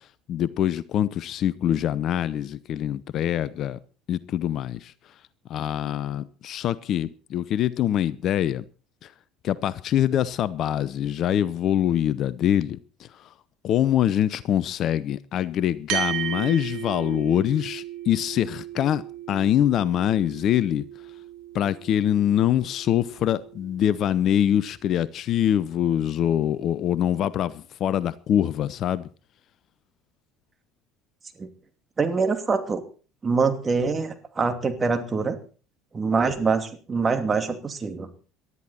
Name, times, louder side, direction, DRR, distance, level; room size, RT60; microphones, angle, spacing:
voice 1, 0.3-3.8 4.1-4.9 5.5-8.6 9.0-9.1 9.4-13.3 13.6-19.0 19.3-20.9 21.5-29.1, left 10 dB, 50° left, 0.7 m, -24 dB
sound 1, 15.9-24.6, right 11 dB, 60° right, 2.1 m, -36 dB
voice 2, 32.0-32.8 33.2-35.4 35.9-38.1, right 4 dB, 25° right, 2.7 m, -24 dB
19.0 x 12.5 x 4.3 m
figure-of-eight pair, 65°, 0 cm